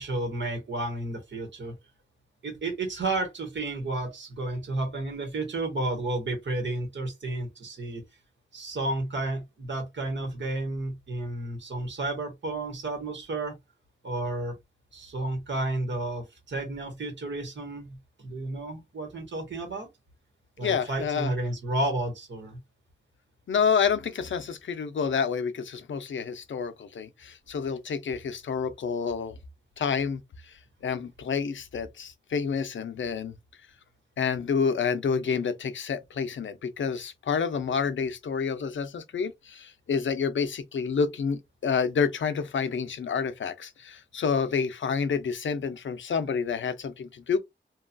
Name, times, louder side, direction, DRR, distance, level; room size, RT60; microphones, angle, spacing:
voice 1, 0.0-1.7 2.4-8.0 8.5-13.5 14.0-14.5 14.9-19.9 20.6-22.6, right 2 dB, 75° right, 1.3 m, -32 dB
voice 2, 20.6-21.3 23.5-29.3 29.8-30.2 30.8-33.4 34.2-47.4, left 6 dB, 85° left, 0.5 m, -28 dB
2.9 x 2.3 x 2.5 m
wide cardioid pair, 115°, 19 cm